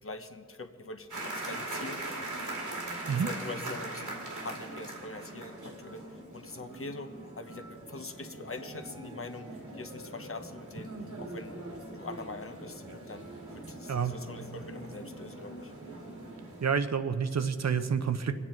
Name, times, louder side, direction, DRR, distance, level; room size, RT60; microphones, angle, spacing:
voice 1, 0.0-2.0 2.8-11.6 11.9-15.7, left 3 dB, 45° left, 7 dB, 0.9 m, -44 dB
sound 1, 1.1-16.7, right 2 dB, 85° right, 2.2 m, -41 dB
voice 2, 16.6-18.3, right 6 dB, 60° right, 10 dB, 0.7 m, -28 dB
22.0 x 8.5 x 4.5 m, 2.2 s
wide cardioid pair, 60°, 30 cm